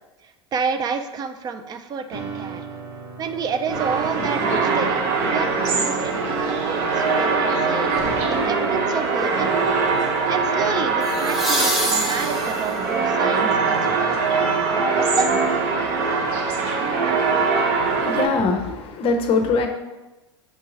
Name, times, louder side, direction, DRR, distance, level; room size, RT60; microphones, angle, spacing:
voice 1, 0.2-2.7 3.2-9.6 10.0-14.2 14.7-15.4, right 6 dB, 25° right, 8 dB, 0.4 m, -30 dB
sound 1, 2.1-10.4, right 3 dB, 75° right, 1.0 m, -32 dB
sound 2, 3.7-18.3, right 4 dB, 55° right, 0.7 m, -22 dB
sound 3, 8.0-8.3 11.0-12.9 15.8-15.9, left 1 dB, ahead, 0.9 m, -26 dB
voice 2, 17.8-19.7, left 4 dB, 40° left, 5 dB, 0.6 m, -22 dB
6.1 x 2.7 x 2.8 m, 1.1 s
hypercardioid pair, 90°, 15 cm